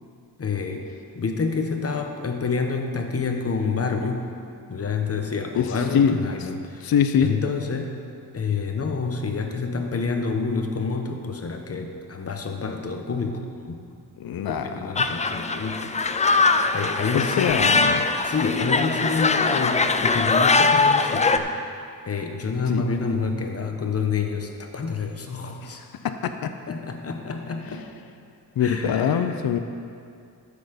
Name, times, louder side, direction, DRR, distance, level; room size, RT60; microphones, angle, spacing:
voice 1, 0.4-0.9 1.1-4.3 4.7-6.9 7.2-8.0 8.3-13.8 14.5-16.3 16.7-17.6 18.2-21.5 22.0-25.8 26.7-27.9 28.6-29.3, left 4 dB, 40° left, 4 dB, 1.0 m, -28 dB
voice 2, 6.8-7.3 14.2-15.3 17.1-18.1 22.7-22.8 26.0-26.5 28.6-29.6, left 8 dB, 70° left, 8 dB, 0.6 m, -23 dB
sound 1, 15.0-21.4, left 3 dB, 20° left, 0.3 m, -21 dB
12.0 x 6.9 x 5.1 m, 2.4 s
wide cardioid pair, 135°, 37 cm